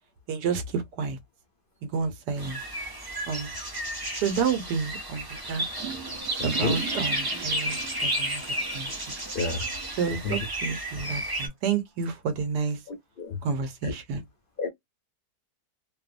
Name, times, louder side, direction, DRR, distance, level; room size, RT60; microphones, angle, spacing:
voice 1, 0.3-1.2 1.9-2.6 3.3-3.5 4.2-5.6 6.4-8.4 8.7-9.2 10.0-12.8 13.4-14.2, right 5 dB, 85° right, 1.3 m, -30 dB
sound 1, 2.4-11.5, right 1 dB, 30° right, 0.4 m, -32 dB
Water / Toilet flush, 5.4-10.4 10.7-10.8 11.5-11.6 12.9-13.0, right 5 dB, 50° right, 1.2 m, -40 dB
voice 2, 12.9-13.4 13.8-13.9 14.6-14.7, left 4 dB, 70° left, 0.5 m, -30 dB
3.0 x 2.0 x 2.4 m
omnidirectional pair, 1.8 m